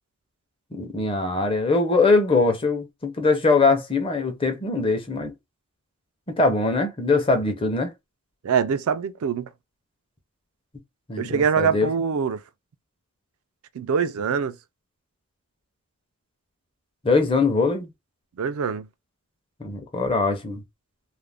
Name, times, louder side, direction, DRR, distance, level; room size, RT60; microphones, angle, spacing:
voice 1, 0.7-5.3 6.3-7.9 11.1-11.9 17.0-17.9 19.6-20.6, left 3 dB, 25° left, 0.6 m, -22 dB
voice 2, 8.4-9.5 11.2-12.4 13.7-14.5 18.4-18.9, right 6 dB, 90° right, 0.4 m, -24 dB
2.4 x 2.1 x 3.3 m
head